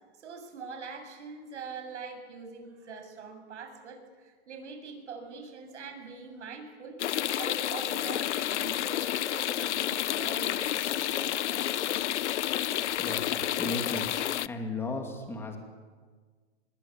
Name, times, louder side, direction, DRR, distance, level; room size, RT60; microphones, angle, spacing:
voice 1, 0.2-11.9 13.3-13.5 13.9-14.0 14.6-14.7, right 5 dB, 75° right, 5 dB, 7.4 m, -44 dB
sound 1, 7.0-14.5, left 12 dB, 75° left, 0.8 m, -30 dB
voice 2, 13.0-14.1 14.5-15.6, left 3 dB, 5° left, 2 dB, 2.7 m, -35 dB
26.0 x 22.5 x 8.7 m, 1.5 s
hypercardioid pair, 165°, 35 cm